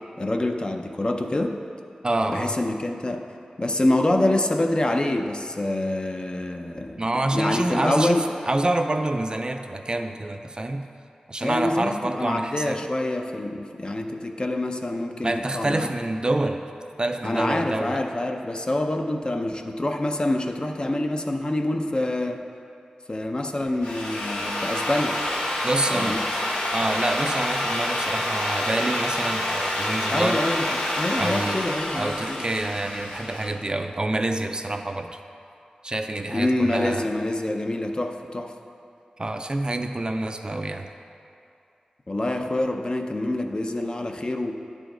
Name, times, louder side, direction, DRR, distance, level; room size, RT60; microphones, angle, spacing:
voice 1, 0.2-1.6 2.3-3.2 3.6-7.0 7.3-8.3 11.4-15.9 17.2-22.4 23.1-25.2 25.9-26.2 30.1-30.7 31.0-32.4 36.3-38.5 42.1-44.5, left 1 dB, 35° left, 4 dB, 0.5 m, -26 dB
voice 2, 2.0-2.6 7.0-10.9 11.3-12.9 15.2-16.6 17.0-18.0 25.6-26.2 26.7-30.4 31.2-31.6 32.0-35.2 35.8-37.1 39.2-40.9, right 2 dB, 35° right, 5 dB, 0.4 m, -27 dB
Drill, 23.6-33.5, left 1 dB, 90° left, 1.2 m, -27 dB
10.0 x 5.0 x 3.8 m, 2.5 s
wide cardioid pair, 65°, 3 cm